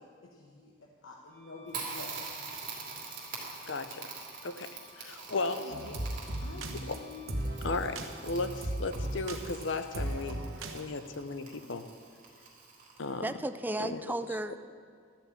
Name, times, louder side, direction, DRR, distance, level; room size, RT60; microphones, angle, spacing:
voice 1, 0.0-2.2 5.3-7.3, left 3 dB, 80° left, -1 dB, 1.1 m, -47 dB
Wind instrument woodwind instrument, 1.3-10.1, equal, 45° left, 3.1 m, -58 dB
Crackle, 1.7-13.3, right 4 dB, 45° right, 2.8 m, -45 dB
voice 2, 3.7-4.1 4.4-5.6 6.9-7.0 7.6-10.4 10.7-11.9 13.0-13.3 13.8-14.0, left 3 dB, 65° left, 10 dB, 0.8 m, -35 dB
sound 1, 5.7-10.8, right 1 dB, 85° right, 1.2 m, -36 dB
voice 3, 13.2-14.6, right 1 dB, 10° right, 10 dB, 0.4 m, -34 dB
13.0 x 6.9 x 8.6 m, 2.1 s
head